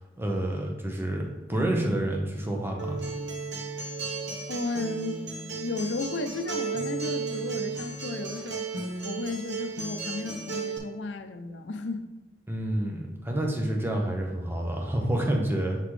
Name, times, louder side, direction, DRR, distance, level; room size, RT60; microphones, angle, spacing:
voice 1, 0.2-3.0 12.5-15.8, right 1 dB, 15° right, 0 dB, 0.9 m, -28 dB
Acoustic guitar, 2.8-10.8, right 4 dB, 85° right, 1.0 m, -34 dB
voice 2, 4.5-8.7 9.0-12.1, left 3 dB, 85° left, 8 dB, 0.6 m, -34 dB
7.3 x 4.0 x 3.2 m, 1.1 s
head